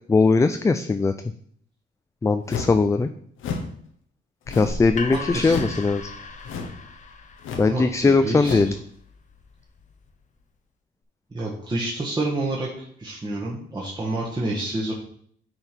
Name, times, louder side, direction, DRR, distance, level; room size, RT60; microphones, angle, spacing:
voice 1, 0.1-1.1 2.2-3.1 4.5-6.0 7.6-8.7, left 3 dB, 15° left, 9 dB, 0.4 m, -20 dB
sound 1, 2.5-2.8 3.4-3.7 4.5-4.9 5.4-5.8 6.4-6.8 7.4-7.7 8.4-8.7, left 5 dB, 80° left, 1.1 m, -31 dB
sound 2, 4.5-10.3, left 3 dB, 40° left, 0.9 m, -38 dB
voice 2, 5.1-5.6 7.6-8.7 11.3-14.9, right 2 dB, 20° right, -5 dB, 1.4 m, -29 dB
9.4 x 3.5 x 4.5 m, 0.62 s
cardioid pair, 90°, 20 cm